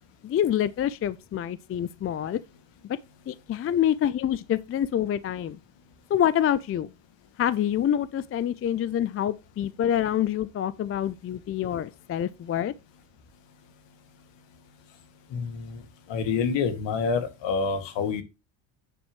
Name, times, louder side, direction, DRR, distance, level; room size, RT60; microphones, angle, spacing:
voice 1, 0.2-2.4 2.8-3.0 3.3-5.6 6.1-6.9 7.4-12.7, left 10 dB, 30° left, 0.5 m, -26 dB
voice 2, 15.3-15.8 16.1-18.2, left 5 dB, 65° left, 2.2 m, -27 dB
9.2 x 7.1 x 3.1 m
cardioid pair, 110°, 47 cm